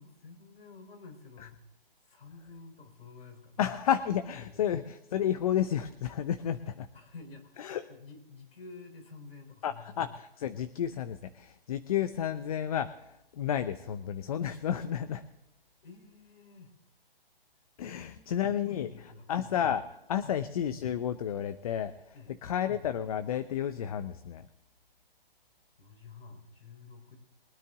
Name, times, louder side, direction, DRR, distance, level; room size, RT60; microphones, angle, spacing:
voice 1, 0.0-1.6 2.0-3.6 4.4-4.7 6.9-10.0 15.8-16.7 17.9-19.3 20.2-20.3 22.1-22.3 25.8-27.2, left 4 dB, 75° left, 5 dB, 3.8 m, -50 dB
voice 2, 3.6-6.9 7.6-7.8 9.6-15.2 17.8-18.9 19.3-24.5, left 9 dB, 40° left, 11 dB, 0.7 m, -31 dB
23.0 x 9.6 x 3.6 m, 0.89 s
hypercardioid pair, 150°, 30 cm